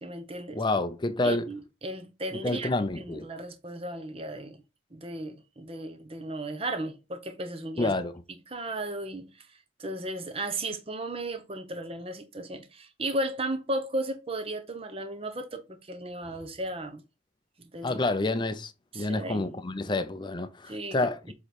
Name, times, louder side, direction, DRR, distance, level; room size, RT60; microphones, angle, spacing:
voice 1, 0.0-0.6 1.2-2.7 3.0-4.6 4.9-7.9 8.5-17.0 17.6-18.0 18.9-19.6 20.7-21.0 21.3-21.4, right 1 dB, 30° right, 0.9 m, -35 dB
voice 2, 0.5-1.4 2.3-3.3 7.8-8.1 17.8-21.3, left 2 dB, 25° left, 0.6 m, -28 dB
8.0 x 3.2 x 4.2 m
head